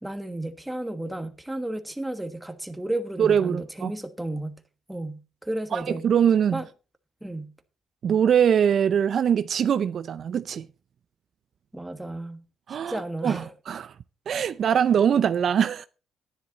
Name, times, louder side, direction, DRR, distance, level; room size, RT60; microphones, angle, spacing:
voice 1, 0.0-4.6 4.9-6.1 6.5-6.6 7.2-7.5 11.7-12.4 12.7-13.5, right 1 dB, 5° right, 1.4 m, -33 dB
voice 2, 3.2-3.9 5.7-6.6 8.0-10.7 12.7-13.9 14.3-15.9, right 8 dB, 60° right, 0.4 m, -22 dB
10.5 x 10.5 x 4.1 m
cardioid pair, 90°, 0 cm